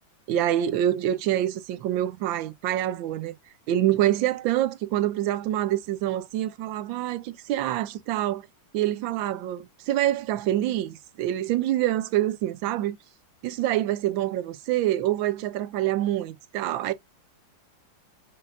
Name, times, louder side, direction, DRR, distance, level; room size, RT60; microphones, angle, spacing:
voice 1, 0.3-3.3 3.7-8.5 8.7-13.0 13.4-16.9, right 13 dB, 85° right, 1.4 m, -26 dB
5.2 x 3.8 x 2.5 m
omnidirectional pair, 2.1 m